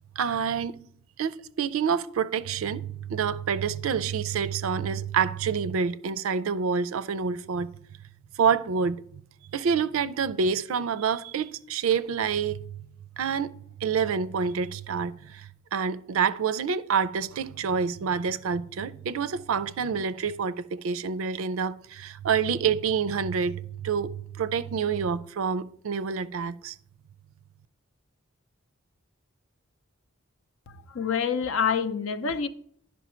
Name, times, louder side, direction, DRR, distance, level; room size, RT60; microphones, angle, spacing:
voice 1, 0.2-0.8 1.2-7.7 8.4-9.0 9.5-12.8 13.2-13.6 13.8-26.7, right 6 dB, 75° right, 0.4 m, -27 dB
voice 2, 30.9-32.5, left 6 dB, 70° left, 0.6 m, -26 dB
11.0 x 5.4 x 4.3 m
head